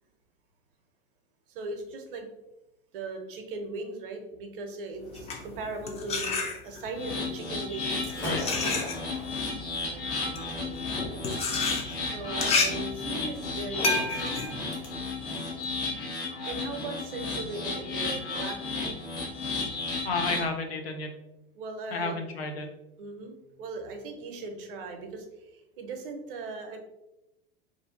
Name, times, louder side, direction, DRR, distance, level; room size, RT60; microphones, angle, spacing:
voice 1, 1.5-2.3 2.9-6.4 6.6-8.1 9.8-10.8 11.8-14.4 16.5-18.9 21.5-22.2 23.0-26.8, right 3 dB, 65° right, 4 dB, 0.6 m, -39 dB
sound 1, 5.0-7.0 7.8-15.7, left 3 dB, 20° left, 0.4 m, -31 dB
sound 2, 6.9-20.5, left 3 dB, 60° left, 1.0 m, -33 dB
Gunshot gunfire / Fireworks, 7.9-14.9, equal, 35° left, 1.1 m, -42 dB
voice 2, 20.0-21.2 21.9-22.7, left 3 dB, 85° left, 4 dB, 0.5 m, -31 dB
2.5 x 2.3 x 2.4 m, 0.93 s
hypercardioid pair, 85°, 30 cm